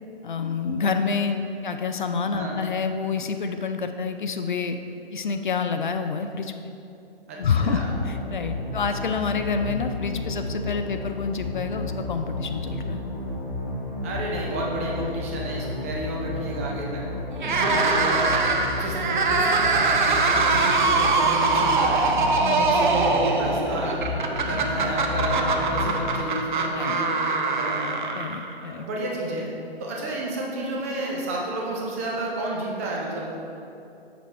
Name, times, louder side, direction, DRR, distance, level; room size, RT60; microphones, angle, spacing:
voice 1, 0.2-4.8 5.1-6.7 7.4-13.0 17.4-17.8 22.4-22.7 26.8-27.0 28.1-28.9, left 5 dB, 50° left, 7 dB, 0.4 m, -28 dB
voice 2, 7.3-8.0 14.0-17.0 17.6-18.2 18.7-22.1 22.5-24.1 24.5-28.0 28.6-29.5 29.8-33.2, right 1 dB, 15° right, -3 dB, 0.5 m, -31 dB
sound 1, 7.5-26.2, left 2 dB, 25° left, 1.1 m, -32 dB
sound 2, 17.4-28.7, right 3 dB, 50° right, 0.7 m, -23 dB
7.0 x 6.8 x 3.2 m, 2.7 s
figure-of-eight pair, 130°, 31 cm